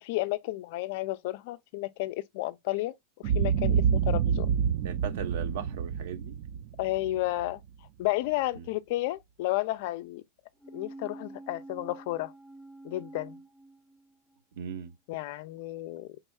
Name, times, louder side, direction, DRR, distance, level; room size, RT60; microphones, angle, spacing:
voice 1, 0.0-2.9 3.2-4.5 6.8-7.6 8.0-10.2 10.7-12.3 12.8-13.4 15.1-16.1, left 17 dB, 55° left, 0.4 m, -32 dB
Boom, 3.2-7.5, right 7 dB, 45° right, 0.3 m, -27 dB
voice 2, 4.8-6.4 8.6-8.7 14.6-14.9, right 7 dB, 70° right, 0.9 m, -37 dB
sound 1, 10.6-14.4 14.7-14.8, right 2 dB, 10° left, 0.8 m, -47 dB
4.4 x 3.4 x 2.3 m
supercardioid pair, 160°, 0 cm